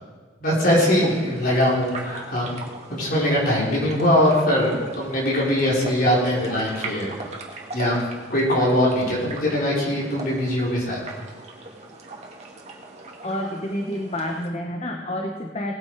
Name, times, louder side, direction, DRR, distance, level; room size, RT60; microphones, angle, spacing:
voice 1, 0.4-2.5 2.9-7.2 7.7-8.0 8.3-11.0, left 1 dB, 50° left, -4 dB, 4.4 m, -21 dB
sound 1, 0.6-14.5, right 3 dB, 35° right, 2.0 m, -39 dB
voice 2, 13.2-15.7, left 1 dB, 35° left, 3 dB, 1.0 m, -29 dB
19.0 x 8.9 x 4.9 m, 1.5 s
head